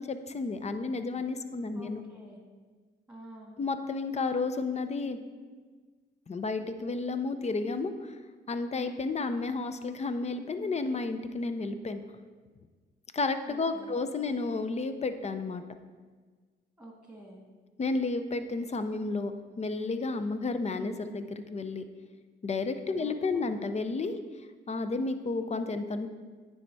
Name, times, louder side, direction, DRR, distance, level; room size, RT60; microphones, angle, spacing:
voice 1, 0.0-2.0 3.6-5.2 6.3-8.2 8.5-12.0 13.1-15.6 17.8-21.8 22.4-24.2 24.7-26.1, left 3 dB, 30° left, 9 dB, 0.5 m, -32 dB
voice 2, 1.7-2.4 3.1-3.6 13.5-14.1 16.8-17.4 23.0-23.6, right 1 dB, 5° right, 0 dB, 2.0 m, -49 dB
9.4 x 3.4 x 4.1 m, 1.4 s
supercardioid pair, 60°, 21 cm